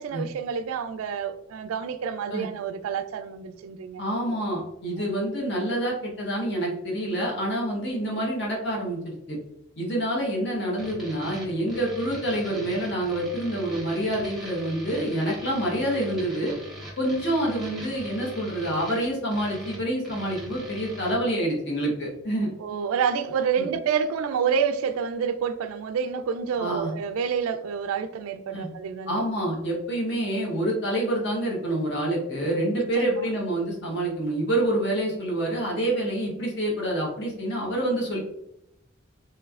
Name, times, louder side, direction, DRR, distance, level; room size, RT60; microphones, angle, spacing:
voice 1, 0.0-4.0 5.0-5.2 22.6-29.2 32.8-33.3, right 6 dB, 90° right, 0.3 m, -28 dB
voice 2, 4.0-9.4 9.8-16.5 17.0-22.5 23.6-23.7 26.6-26.9 28.5-28.7 29.1-38.2, right 1 dB, 55° left, 1.0 m, -27 dB
sound 1, 10.8-21.1, equal, ahead, 0.8 m, -42 dB
3.2 x 3.1 x 2.3 m
head